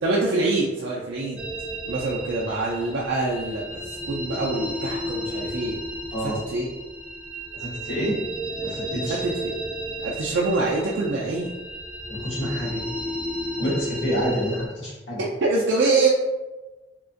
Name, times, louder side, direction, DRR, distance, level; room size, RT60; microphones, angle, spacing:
voice 1, 0.0-1.4 1.9-5.8 6.2-6.7 9.1-9.6 10.0-11.5 15.4-16.1, right 3 dB, 85° right, -4 dB, 0.4 m, -25 dB
sound 1, 1.4-14.7, equal, 5° right, 0.3 m, -33 dB
voice 2, 7.5-8.2 8.6-9.2 12.1-12.9 13.6-15.2, equal, 90° left, -7 dB, 1.1 m, -28 dB
2.9 x 2.4 x 2.5 m, 1.1 s
head